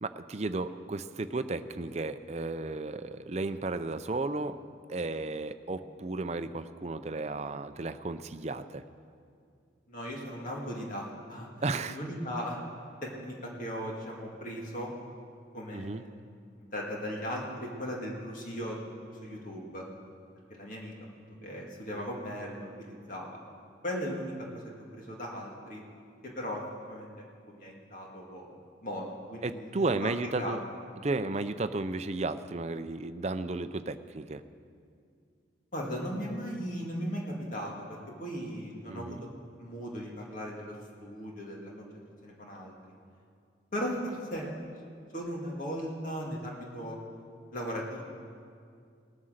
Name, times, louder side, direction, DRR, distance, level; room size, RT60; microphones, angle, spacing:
voice 1, 0.0-4.6 4.9-8.8 11.6-12.0 15.7-16.0 29.4-30.6 31.0-34.4 38.9-39.2, right 3 dB, 35° right, 10 dB, 0.5 m, -33 dB
voice 2, 9.9-11.5 11.9-12.6 13.0-14.9 15.5-19.8 20.5-20.9 21.4-23.4 23.8-24.6 24.9-25.8 26.2-27.1 27.5-28.5 28.8-29.7 30.0-30.6 35.7-39.2 39.6-41.9 42.2-42.7 43.7-44.5 45.1-47.0 47.5-48.0, equal, 45° left, -2 dB, 2.2 m, -37 dB
19.0 x 9.7 x 6.5 m, 2.3 s
head